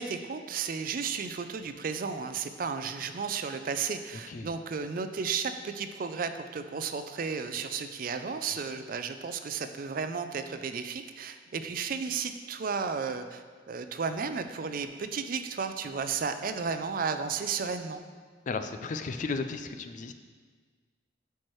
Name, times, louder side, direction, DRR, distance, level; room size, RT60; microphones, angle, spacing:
voice 1, 0.0-18.0, right 5 dB, 50° right, 9 dB, 0.4 m, -33 dB
voice 2, 18.5-20.1, left 4 dB, 40° left, 8 dB, 0.4 m, -34 dB
11.5 x 4.6 x 3.1 m, 1.5 s
head